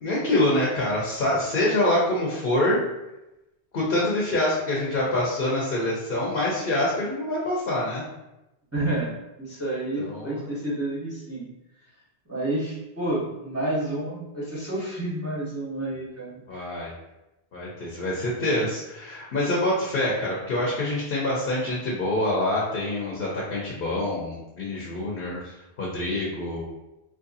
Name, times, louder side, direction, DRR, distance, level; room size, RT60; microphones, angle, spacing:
voice 1, 0.0-2.8 3.7-8.0 10.0-10.5 16.5-16.9 17.5-26.6, left 1 dB, 60° left, -4 dB, 0.9 m, -26 dB
voice 2, 8.7-9.1 9.4-11.5 12.3-16.6, right 1 dB, 15° right, -7 dB, 0.8 m, -29 dB
3.1 x 2.6 x 3.9 m, 0.95 s
omnidirectional pair, 1.1 m